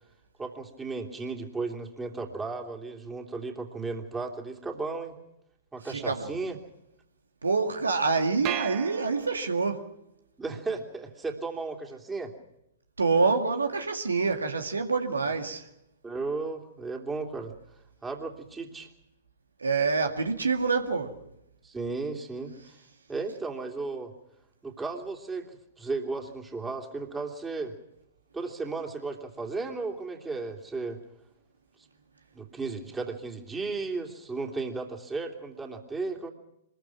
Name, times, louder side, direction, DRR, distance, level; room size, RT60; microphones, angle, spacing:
voice 1, 0.4-5.2 5.7-6.6 10.4-12.3 16.0-17.5 18.0-18.9 21.6-22.5 23.1-24.1 24.6-27.7 28.3-31.0 32.3-36.3, right 3 dB, 10° right, 3.1 m, -35 dB
voice 2, 5.9-6.4 7.4-9.9 13.0-15.7 19.6-21.2, right 4 dB, 80° right, 2.0 m, -26 dB
sound 1, 8.5-9.8, right 13 dB, 35° right, 1.3 m, -36 dB
25.5 x 21.5 x 6.0 m
figure-of-eight pair, 110°, 0 cm